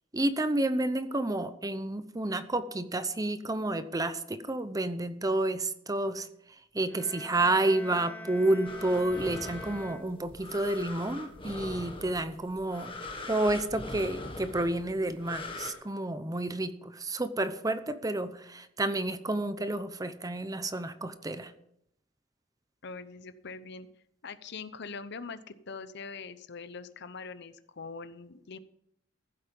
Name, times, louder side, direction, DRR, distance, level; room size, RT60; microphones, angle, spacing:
voice 1, 0.1-6.3 6.7-12.9 13.3-21.5, right 2 dB, 20° right, 11 dB, 0.8 m, -30 dB
sound 1, 6.9-10.7, left 2 dB, 10° left, 0.9 m, -45 dB
sound 2, 8.7-15.7, left 2 dB, 30° left, 1.8 m, -42 dB
voice 2, 22.8-23.9 24.2-28.6, left 4 dB, 60° left, 13 dB, 0.8 m, -43 dB
15.5 x 8.1 x 5.4 m, 0.77 s
head